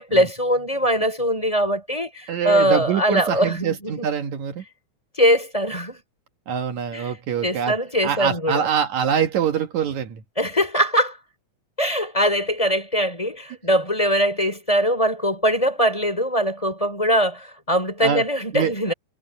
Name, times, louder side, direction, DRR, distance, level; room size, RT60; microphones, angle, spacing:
voice 1, 0.0-4.1 5.2-6.0 6.9-7.1 7.4-8.7 10.4-11.2 11.8-18.9, equal, 10° left, 4.0 m, -22 dB
voice 2, 2.3-4.6 6.5-7.8 8.0-10.2 18.0-18.2 18.5-18.9, right 8 dB, 75° right, 2.6 m, -24 dB
omnidirectional pair, 3.4 m